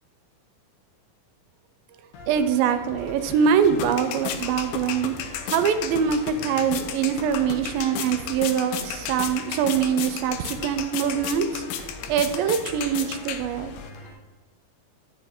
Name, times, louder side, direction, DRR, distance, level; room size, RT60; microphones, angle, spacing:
sound 1, 2.1-14.1, left 2 dB, 65° left, 2.4 m, -43 dB
voice 1, 2.3-13.7, right 7 dB, 80° right, 10 dB, 2.3 m, -24 dB
sound 2, 3.2-13.9, left 8 dB, 85° left, 2.5 m, -34 dB
9.2 x 6.4 x 3.5 m, 1.3 s
omnidirectional pair, 4.3 m